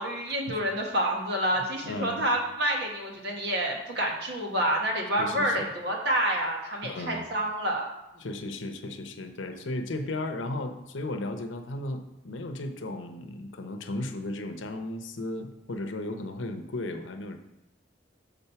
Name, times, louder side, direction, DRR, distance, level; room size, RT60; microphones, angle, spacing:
voice 1, 0.0-7.9, right 1 dB, 60° right, 0 dB, 1.4 m, -28 dB
voice 2, 1.6-2.2 5.2-5.7 6.8-7.2 8.2-17.4, left 2 dB, 85° left, 7 dB, 0.8 m, -35 dB
7.0 x 3.7 x 5.7 m, 0.90 s
head